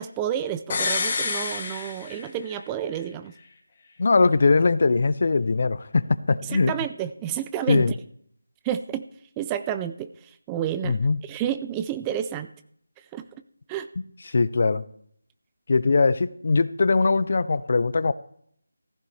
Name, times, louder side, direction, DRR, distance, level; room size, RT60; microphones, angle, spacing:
voice 1, 0.0-3.3 6.4-8.0 8.6-9.1 9.4-11.0 11.2-12.5 13.1-13.3 13.7-13.9, right 10 dB, 15° right, 11 dB, 0.4 m, -30 dB
sound 1, 0.7-2.6 2.9-3.0, left 4 dB, 30° left, 2.0 m, -28 dB
voice 2, 4.0-6.7 7.7-7.9 10.8-11.2 14.3-14.8 15.7-18.1, left 4 dB, 50° left, 17 dB, 0.5 m, -21 dB
15.0 x 11.0 x 3.3 m, 0.66 s
figure-of-eight pair, 170°, 0 cm